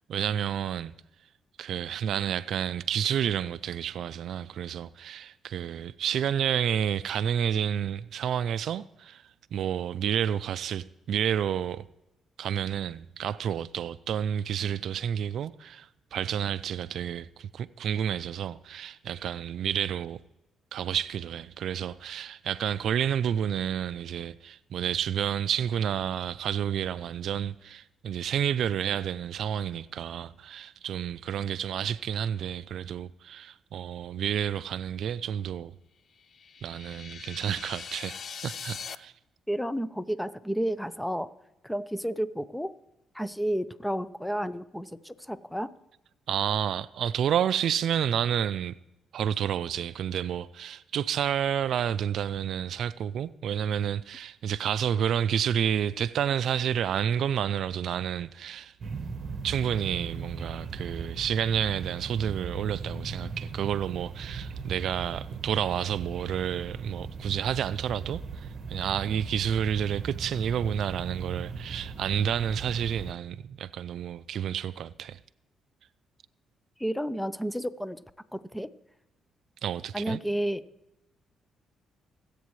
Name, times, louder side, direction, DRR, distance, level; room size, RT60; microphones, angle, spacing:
voice 1, 0.1-0.9 1.6-9.2 9.5-11.9 12.4-20.2 20.7-35.7 36.6-39.1 46.3-48.7 49.1-58.7 59.4-75.2 79.6-80.2, right 9 dB, 70° right, 0.3 m, -30 dB
sound 1, 36.2-39.0, left 6 dB, 50° left, 0.4 m, -41 dB
voice 2, 39.5-41.3 41.6-42.7 43.1-45.7 76.8-78.0 78.3-78.7 79.9-80.6, equal, 5° left, 0.6 m, -31 dB
sound 2, 58.8-73.1, right 4 dB, 45° right, 1.1 m, -38 dB
25.0 x 8.3 x 3.1 m
cardioid pair, 90°, 0 cm